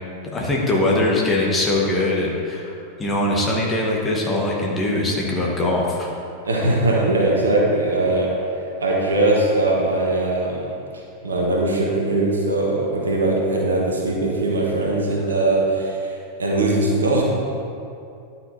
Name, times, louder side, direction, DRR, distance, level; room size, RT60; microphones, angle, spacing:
voice 1, 0.3-2.7 3.0-6.1, left 1 dB, 20° left, -3 dB, 1.6 m, -21 dB
voice 2, 6.4-8.3 8.8-10.7 11.2-17.2, right 2 dB, 70° right, -2 dB, 1.3 m, -20 dB
11.0 x 5.9 x 4.2 m, 2.6 s
figure-of-eight pair, 90°, 0 cm